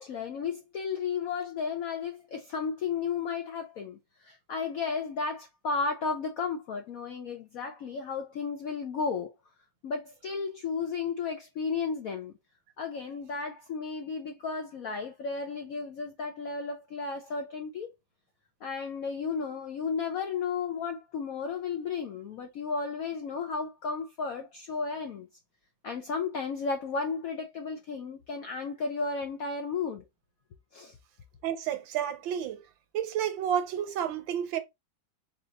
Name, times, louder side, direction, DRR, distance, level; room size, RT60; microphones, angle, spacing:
voice 1, 0.0-9.3 9.8-12.3 12.8-17.9 18.6-25.3 25.8-30.0 30.7-31.0, left 5 dB, 75° left, 0.8 m, -33 dB
voice 2, 31.4-32.6 32.9-34.6, right 9 dB, 75° right, 1.4 m, -30 dB
4.2 x 2.4 x 4.0 m
omnidirectional pair, 2.1 m